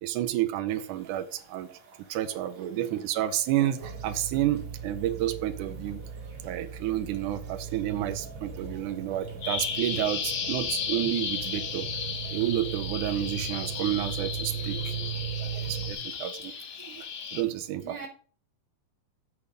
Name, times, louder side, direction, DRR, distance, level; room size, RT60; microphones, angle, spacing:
voice 1, 0.0-1.7 2.1-6.0 6.4-11.9 12.3-15.0 15.4-16.5 16.8-17.1 17.3-18.1, right 13 dB, 85° right, 12 dB, 2.1 m, -30 dB
sound 1, 0.7-17.5, right 5 dB, 60° right, 3.3 m, -55 dB
voice 2, 2.5-3.0 14.5-15.2 16.6-16.7 17.8-18.1, right 3 dB, 15° right, 1 dB, 2.7 m, -44 dB
sound 2, 3.8-15.9, right 7 dB, 45° right, 2.8 m, -37 dB
Bird vocalization bird call bird song, 9.4-17.4, left 7 dB, 80° left, 0.8 m, -34 dB
8.5 x 6.6 x 5.1 m, 0.41 s
omnidirectional pair, 3.6 m